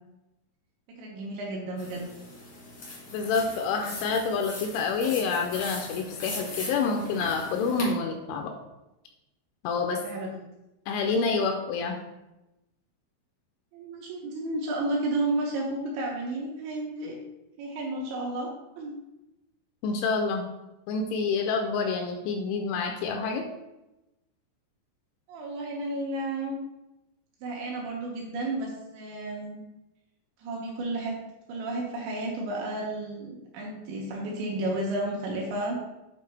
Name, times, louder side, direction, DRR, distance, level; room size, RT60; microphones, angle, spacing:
voice 1, 0.9-2.0 10.0-10.3 13.7-17.2 17.6-18.5 18.8-19.0 25.3-26.6 27.4-29.6 30.4-31.1 31.5-35.8, right 2 dB, 75° right, -2 dB, 2.8 m, -32 dB
sound 1, 1.8-7.9, left 2 dB, 60° left, 1.4 m, -40 dB
voice 2, 3.1-8.5 9.6-10.0 10.9-12.0 19.8-20.5 20.9-23.4, left 4 dB, 85° left, 3 dB, 2.8 m, -28 dB
8.5 x 4.2 x 3.3 m, 0.96 s
omnidirectional pair, 5.8 m